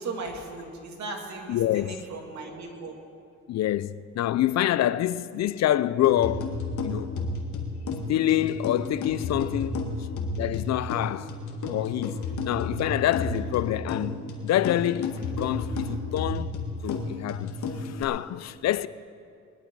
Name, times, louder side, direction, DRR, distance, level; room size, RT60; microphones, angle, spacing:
voice 1, 0.0-2.9, right 3 dB, 65° right, 2.4 m, -37 dB
voice 2, 1.5-2.0 3.5-6.5 6.8-7.2 8.1-10.1 10.4-11.3 11.7-16.5 16.8-18.9, left 13 dB, 60° left, 0.5 m, -26 dB
sound 1, 6.0-18.0, left 3 dB, 75° left, 1.9 m, -32 dB
21.0 x 11.5 x 4.7 m
cardioid pair, 90°, 30 cm